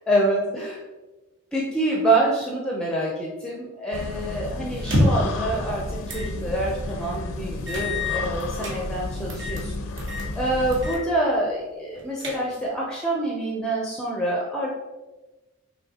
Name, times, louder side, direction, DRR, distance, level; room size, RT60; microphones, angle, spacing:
voice 1, 0.1-0.8 1.5-9.7 10.4-14.7, right 1 dB, 5° left, -3 dB, 0.5 m, -26 dB
sound 1, 3.9-10.9, left 2 dB, 85° left, 0.5 m, -32 dB
sound 2, 4.8-5.4 6.1-6.3 6.7-6.8 7.7-8.8 9.3-9.7 10.0-10.3 10.7-11.0 11.4-11.5 11.9-12.7, left 1 dB, 60° right, 0.9 m, -26 dB
5.5 x 3.2 x 2.8 m, 1.1 s
head